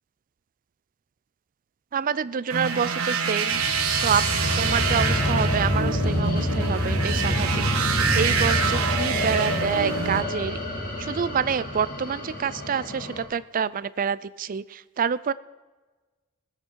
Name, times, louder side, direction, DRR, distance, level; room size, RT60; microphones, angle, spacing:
voice 1, 1.9-3.6 3.9-4.2 4.6-10.6 11.0-15.3, right 7 dB, 40° right, 17 dB, 0.4 m, -27 dB
sound 1, 2.5-10.2, right 6 dB, 70° right, 1.5 m, -26 dB
sound 2, 3.5-13.2, left 1 dB, 40° left, 2.1 m, -27 dB
20.0 x 8.1 x 4.6 m, 1.3 s
head